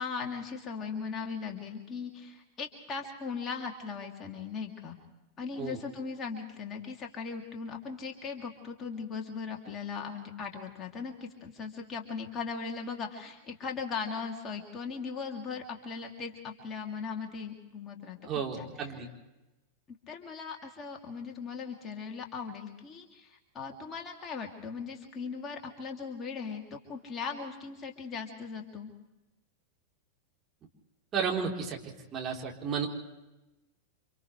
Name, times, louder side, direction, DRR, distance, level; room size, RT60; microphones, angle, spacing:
voice 1, 0.0-5.0 5.4-18.2 18.5-18.9 20.1-28.9, left 5 dB, 25° left, 1 dB, 2.9 m, -38 dB
voice 2, 18.2-19.1 31.1-31.8 32.1-32.9, right 6 dB, 25° right, -2 dB, 4.0 m, -32 dB
29.5 x 26.5 x 3.3 m, 1.0 s
figure-of-eight pair, 90°, 0 cm